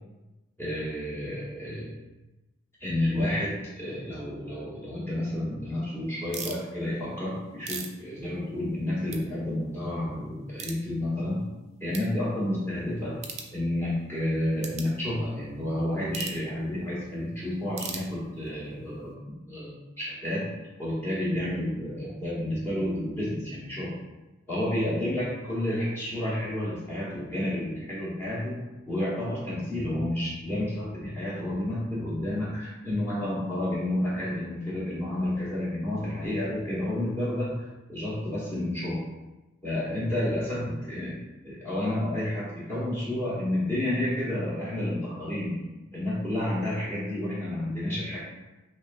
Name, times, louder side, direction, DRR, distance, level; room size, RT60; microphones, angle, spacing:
voice 1, 0.6-1.9 2.8-11.5 11.8-13.2 13.5-19.1 19.5-20.5 20.8-24.0 24.5-28.6 28.9-37.6 37.9-39.0 39.6-41.1 41.4-45.6 45.9-48.2, left 1 dB, 10° left, -9 dB, 1.3 m, -30 dB
sound 1, 6.3-6.6 7.3-8.8 9.1-9.2 9.7-9.8 10.6-10.8 11.4-11.5 11.9-12.1 13.2-13.5 14.6-14.9 16.1-16.4 17.7-18.5, right 6 dB, 30° right, 0.3 m, -38 dB
5.9 x 2.3 x 2.6 m, 1.0 s
head